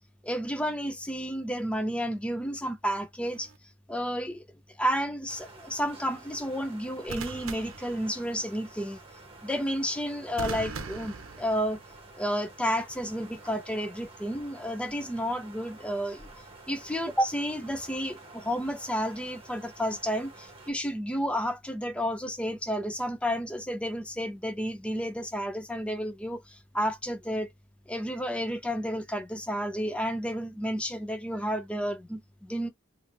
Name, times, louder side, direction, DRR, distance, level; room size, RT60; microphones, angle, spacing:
voice 1, 0.2-3.5 3.9-4.4 4.8-9.0 9.4-11.8 12.2-16.3 16.7-27.5 27.9-32.7, equal, 5° left, 0.5 m, -31 dB
sound 1, 3.2-3.6 7.1-8.6 10.4-12.0 13.2-13.6, right 4 dB, 70° right, 0.7 m, -40 dB
sound 2, 5.3-20.7, right 2 dB, 25° right, 1.1 m, -50 dB
3.4 x 2.7 x 2.6 m
head